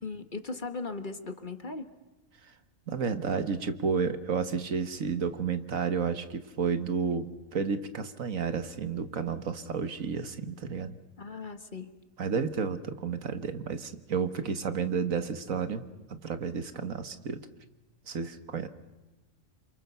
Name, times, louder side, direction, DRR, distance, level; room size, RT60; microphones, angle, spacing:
voice 1, 0.0-1.9 11.2-11.9, left 3 dB, 40° left, 8 dB, 1.6 m, -38 dB
voice 2, 2.9-11.0 12.2-15.8 16.1-17.4 18.1-18.7, right 6 dB, 80° right, 10 dB, 1.8 m, -31 dB
28.5 x 27.0 x 6.9 m, 1.1 s
omnidirectional pair, 1.4 m